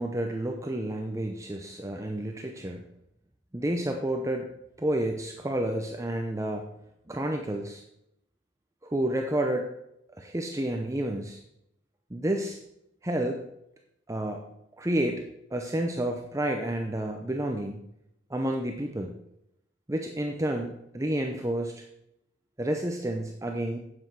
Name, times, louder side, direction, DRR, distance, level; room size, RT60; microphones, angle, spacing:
voice 1, 0.0-2.8 3.5-4.5 4.8-6.7 7.1-7.8 8.8-9.7 10.2-11.4 12.1-12.6 13.0-13.4 14.1-15.2 15.5-17.8 18.3-19.1 19.9-21.8 22.6-23.8, right 1 dB, 15° right, 3 dB, 0.7 m, -30 dB
9.7 x 8.0 x 4.7 m, 0.80 s
head